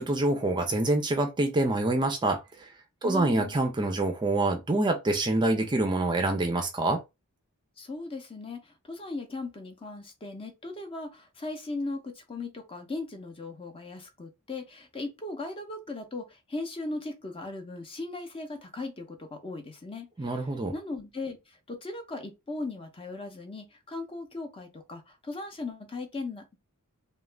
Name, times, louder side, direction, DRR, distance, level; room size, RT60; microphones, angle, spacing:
voice 1, 0.0-2.7 3.0-7.0 20.2-20.7, right 2 dB, 20° right, 0.4 m, -26 dB
voice 2, 3.0-3.5 7.8-20.3 20.7-21.4 21.7-26.6, left 2 dB, 25° left, 0.6 m, -38 dB
2.4 x 2.1 x 3.1 m
head